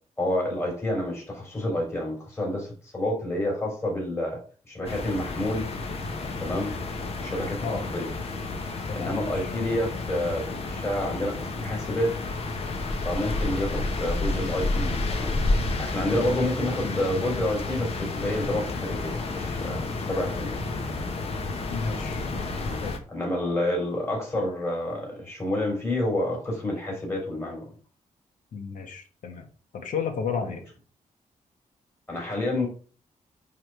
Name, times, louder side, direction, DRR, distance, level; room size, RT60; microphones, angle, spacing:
voice 1, 0.2-4.4 4.7-5.7 6.4-6.7 7.2-8.1 8.9-12.2 13.0-15.4 15.8-20.6 22.6-22.8 23.1-27.6 30.5-30.6 32.1-32.7, left 1 dB, 20° left, -1 dB, 3.9 m, -29 dB
sound 1, 4.8-23.0, left 3 dB, 50° left, 1.4 m, -30 dB
voice 2, 8.9-9.5 21.7-22.2 22.8-23.0 28.5-29.5 29.7-30.6, left 5 dB, 80° left, 4 dB, 1.6 m, -32 dB
8.9 x 3.8 x 4.7 m, 0.40 s
wide cardioid pair, 125°, 13 cm